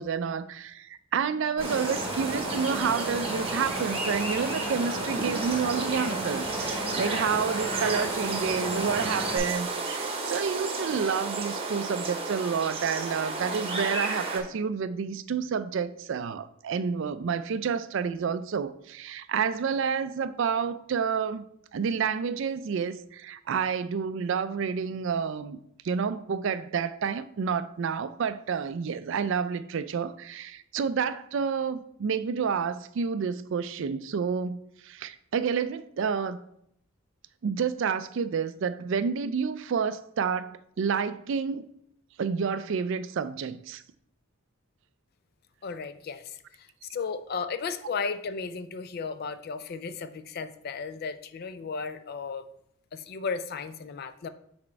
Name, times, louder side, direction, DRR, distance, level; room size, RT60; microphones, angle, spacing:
voice 1, 0.0-21.5 21.7-25.6 25.8-36.4 37.4-41.7 42.2-43.8, right 6 dB, 60° right, 0.4 m, -29 dB
Wind, 1.6-9.4, equal, 25° left, 2.6 m, -35 dB
sound 1, 1.6-14.4, right 3 dB, 25° right, 0.9 m, -32 dB
voice 2, 45.6-52.5 52.9-54.3, left 5 dB, 45° left, 0.4 m, -35 dB
6.1 x 4.3 x 4.4 m
head